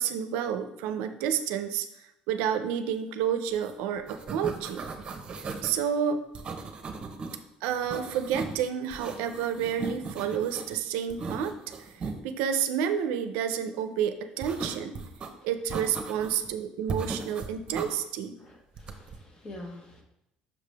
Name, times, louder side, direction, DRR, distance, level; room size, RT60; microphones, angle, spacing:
voice 1, 0.0-1.9 2.3-4.9 5.4-6.2 7.6-11.6 12.2-15.0 15.4-18.4, right 8 dB, 80° right, 9 dB, 0.5 m, -30 dB
sound 1, 3.5-3.7 4.0-5.8 6.4-7.4 7.7-8.6 8.9-10.8 11.1-12.2 14.4-15.3 15.7-16.5 16.9-17.9 18.8-19.2, right 4 dB, 35° right, 0.9 m, -37 dB
voice 2, 18.4-20.0, left 1 dB, 35° left, 2 dB, 1.4 m, -45 dB
6.0 x 4.9 x 3.4 m, 0.82 s
supercardioid pair, 85°, 3 cm